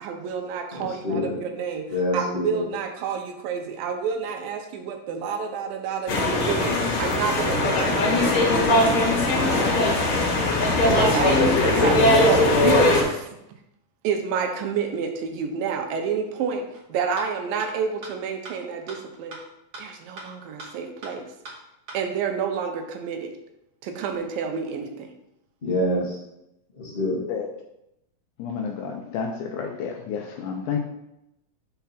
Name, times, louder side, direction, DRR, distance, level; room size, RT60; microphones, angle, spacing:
voice 1, 0.0-1.9 2.1-9.1 9.5-13.4 14.0-19.4 19.8-21.3 21.9-23.3 23.8-25.1, right 6 dB, 85° right, 4 dB, 2.6 m, -29 dB
voice 2, 0.7-1.3 1.9-2.6 25.6-26.2 26.8-27.2, left 1 dB, 35° left, -6 dB, 0.8 m, -26 dB
sound 1, 6.1-13.0, left 2 dB, 55° left, 2.4 m, -20 dB
sound 2, 16.7-16.8 17.2-17.3 17.6-17.7 18.0-18.1 18.4-18.5 18.9-19.0 19.3-19.4 19.7-19.8 20.2-20.3 20.6-20.7 21.0-21.1 21.4-21.5 21.9-22.0, right 2 dB, 50° right, 1.2 m, -38 dB
voice 3, 28.4-30.8, left 6 dB, 75° left, 2 dB, 1.9 m, -30 dB
5.6 x 4.7 x 5.8 m, 0.84 s
omnidirectional pair, 4.0 m